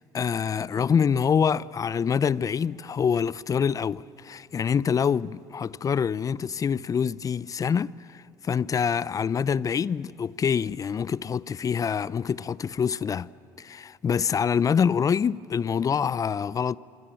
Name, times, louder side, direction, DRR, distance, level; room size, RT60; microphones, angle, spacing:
voice 1, 0.0-13.3 13.6-16.8, left 7 dB, 35° left, 0.5 m, -26 dB
26.0 x 25.0 x 7.8 m
supercardioid pair, 70°, 10 cm